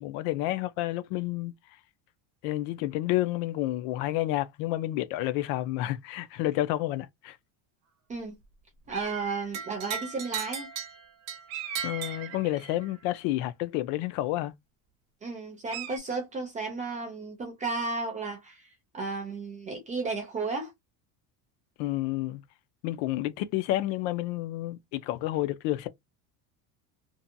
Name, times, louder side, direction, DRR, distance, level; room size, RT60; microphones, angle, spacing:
voice 1, 0.0-1.5 2.4-7.4 11.8-14.5 21.8-22.4 22.8-25.9, left 15 dB, 65° left, 0.5 m, -30 dB
voice 2, 8.9-10.7 15.2-18.7 18.9-20.7, right 4 dB, 20° right, 0.3 m, -33 dB
sound 1, 8.9-9.7 11.5-13.0 15.7-16.0, right 8 dB, 70° right, 1.0 m, -40 dB
sound 2, 9.5-12.9, right 7 dB, 35° right, 0.8 m, -38 dB
2.7 x 2.2 x 2.5 m
cardioid pair, 160°, 46 cm